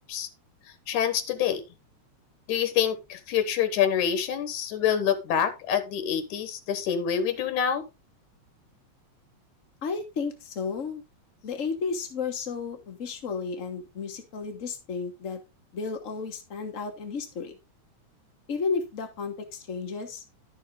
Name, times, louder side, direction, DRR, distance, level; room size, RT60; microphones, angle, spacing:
voice 1, 0.9-1.6 2.5-7.8, left 8 dB, 90° left, 10 dB, 2.7 m, -26 dB
voice 2, 9.8-11.0 11.4-15.4 15.7-17.5 18.5-20.2, left 5 dB, 75° left, 6 dB, 0.7 m, -33 dB
11.5 x 6.4 x 3.7 m, 0.25 s
omnidirectional pair, 3.4 m